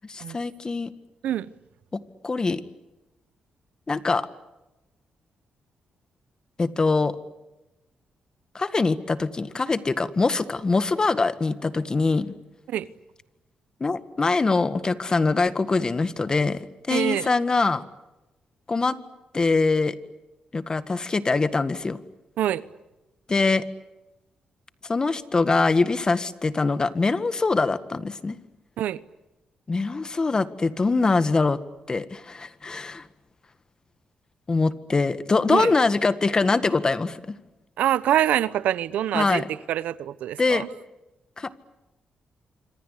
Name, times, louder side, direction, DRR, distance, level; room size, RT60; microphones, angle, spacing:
voice 1, 0.1-0.9 1.9-2.6 3.9-4.3 6.6-7.2 8.5-12.3 13.8-17.8 18.7-19.0 19.3-20.0 20.5-22.0 23.3-23.6 24.9-28.4 29.7-31.6 31.9-33.0 34.5-37.2 39.1-39.5 40.4-40.6 41.4-41.5, left 3 dB, 30° left, 1.8 m, -23 dB
voice 2, 16.9-17.3 22.4-22.6 28.8-29.0 35.5-35.7 37.8-40.7, right 11 dB, 85° right, 0.9 m, -25 dB
26.5 x 25.5 x 8.4 m
cardioid pair, 85°, 2 cm